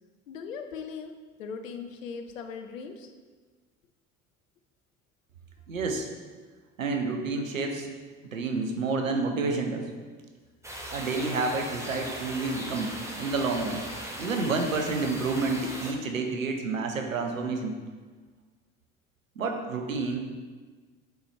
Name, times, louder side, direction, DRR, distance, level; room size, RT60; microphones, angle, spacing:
voice 1, 0.3-3.1, left 5 dB, 80° left, 7 dB, 0.6 m, -39 dB
voice 2, 5.7-6.1 6.8-7.9 8.2-9.9 10.9-13.8 14.2-17.7 19.4-20.2, right 3 dB, 85° right, 4 dB, 0.7 m, -29 dB
sound 1, 10.6-15.9, equal, 5° right, 1.0 m, -38 dB
8.1 x 4.1 x 3.1 m, 1.4 s
figure-of-eight pair, 60°, 39 cm